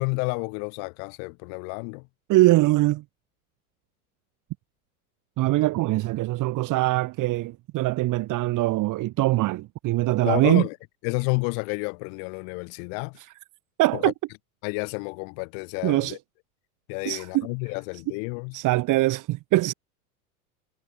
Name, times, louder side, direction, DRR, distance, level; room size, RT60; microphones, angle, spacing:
voice 1, 0.0-2.0 10.2-10.8 11.0-13.2 13.9-14.1 14.6-16.2 16.9-18.5, left 40 dB or more, 50° left, 1.7 m, -30 dB
voice 2, 2.3-3.0 5.4-10.7 13.8-14.1 15.8-16.2 17.1-17.5 18.5-19.7, right 18 dB, 45° right, 2.6 m, -22 dB
hypercardioid pair, 90°, 45 cm